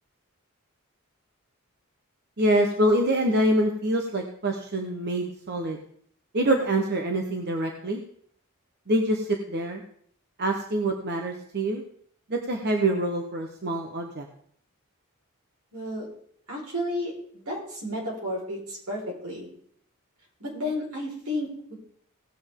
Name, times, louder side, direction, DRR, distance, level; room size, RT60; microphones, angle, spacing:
voice 1, 2.4-5.8 6.3-8.0 8.9-9.8 10.4-11.8 12.3-14.3, right 1 dB, 50° right, 3 dB, 1.0 m, -25 dB
voice 2, 15.7-16.1 16.5-19.5 20.4-21.7, left 1 dB, 80° right, -2 dB, 4.5 m, -32 dB
18.0 x 7.7 x 3.7 m, 0.63 s
head